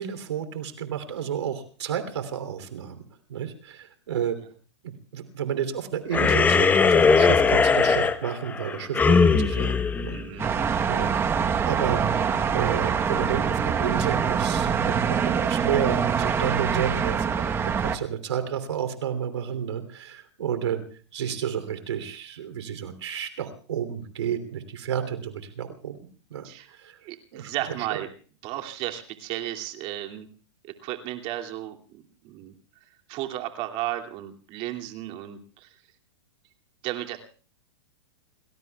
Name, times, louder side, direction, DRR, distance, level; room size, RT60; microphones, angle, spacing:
voice 1, 0.0-3.0 3.3-4.4 4.8-9.7 10.0-10.2 10.4-10.6 10.9-11.1 11.7-12.2 12.5-17.5 17.8-20.8 21.1-26.0 26.3-26.5 26.8-26.9 27.3-27.5, right 8 dB, 85° right, 8 dB, 3.1 m, -31 dB
sound 1, 6.1-10.8, left 5 dB, 10° left, 1.0 m, -20 dB
voice 2, 10.1-10.5 26.4-26.8 27.0-28.1 28.4-30.3 30.6-32.5 33.1-35.7 36.8-37.2, right 14 dB, 40° right, 4 dB, 2.6 m, -34 dB
sound 2, 10.4-18.0, right 7 dB, 15° right, 1.1 m, -24 dB
29.5 x 20.0 x 2.4 m, 0.40 s
hypercardioid pair, 140°, 14 cm